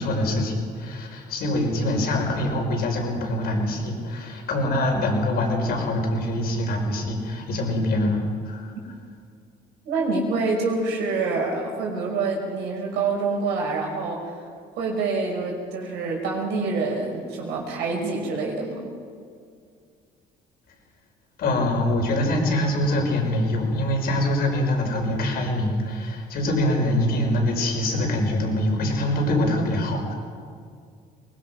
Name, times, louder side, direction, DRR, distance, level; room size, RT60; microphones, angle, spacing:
voice 1, 0.0-8.7 21.4-30.1, left 1 dB, 65° left, 1 dB, 5.5 m, -24 dB
voice 2, 9.8-14.4 14.8-18.9, right 3 dB, 90° right, 0 dB, 5.5 m, -26 dB
23.0 x 20.0 x 5.9 m, 2.2 s
cardioid pair, 110°, 17 cm